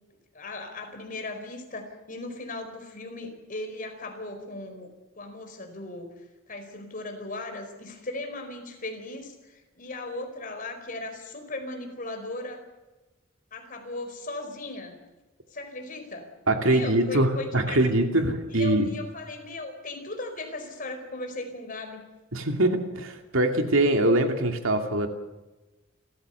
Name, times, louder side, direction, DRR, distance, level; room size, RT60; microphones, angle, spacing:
voice 1, 0.3-4.9 5.2-6.1 6.5-12.6 13.5-15.0 15.5-16.3 16.6-17.8 18.5-22.1, left 2 dB, 40° left, 5 dB, 4.7 m, -37 dB
voice 2, 16.5-18.9 22.3-25.1, right 1 dB, 70° right, 5 dB, 2.6 m, -23 dB
29.5 x 14.5 x 7.0 m, 1.1 s
head